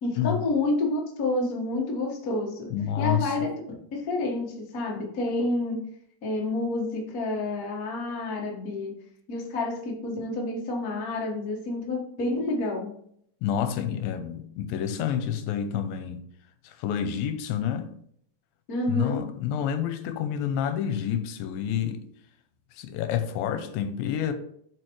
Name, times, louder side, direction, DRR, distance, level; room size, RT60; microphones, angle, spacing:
voice 1, 0.0-2.7 3.0-3.5 3.9-5.8 6.2-8.9 9.3-12.9 18.7-19.2, left 2 dB, 50° left, 1.0 m, -29 dB
voice 2, 2.7-3.3 13.4-16.2 16.6-17.9 18.9-22.0 22.7-24.3, left 9 dB, 85° left, 2.4 m, -28 dB
7.7 x 5.0 x 3.1 m
omnidirectional pair, 4.1 m